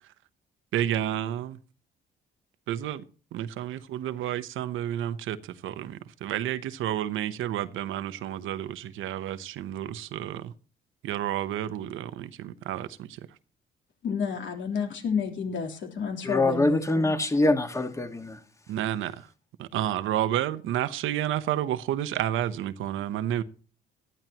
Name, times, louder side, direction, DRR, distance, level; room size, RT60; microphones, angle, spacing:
voice 1, 0.7-1.6 2.7-3.0 3.3-10.5 11.0-13.3 18.7-19.3 19.6-23.4, right 11 dB, 85° right, 0.9 m, -30 dB
voice 2, 14.0-17.1, left 6 dB, 70° left, 3.5 m, -30 dB
voice 3, 16.2-18.4, left 2 dB, 15° left, 1.6 m, -24 dB
18.0 x 12.0 x 2.9 m
cardioid pair, 90°, 20 cm